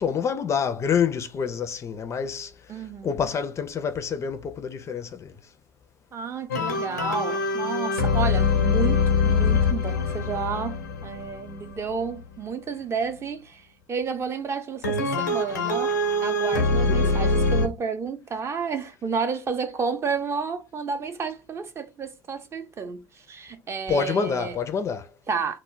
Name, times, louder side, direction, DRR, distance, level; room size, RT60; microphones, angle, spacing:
voice 1, 0.0-5.4 16.9-17.3 23.9-25.1, left 6 dB, 30° left, 0.4 m, -27 dB
voice 2, 2.7-3.2 6.1-15.9 16.2-24.6 25.3-25.6, right 5 dB, 30° right, 0.5 m, -31 dB
sound 1, 6.5-12.2 14.8-17.7, left 3 dB, 90° left, 0.5 m, -24 dB
2.1 x 2.0 x 3.7 m
hypercardioid pair, 70°, 9 cm